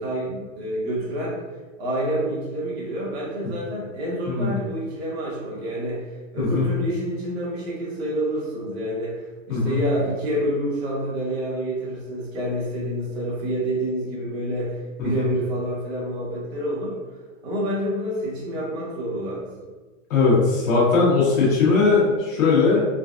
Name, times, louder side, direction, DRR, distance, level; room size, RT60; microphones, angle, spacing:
voice 1, 0.0-1.4 1.8-6.1 6.3-16.9 17.4-19.5, right 1 dB, 50° right, -6 dB, 1.3 m, -28 dB
voice 2, 20.1-22.9, left 4 dB, 75° left, -6 dB, 1.3 m, -19 dB
3.8 x 2.3 x 2.5 m, 1.2 s
supercardioid pair, 180°, 40 cm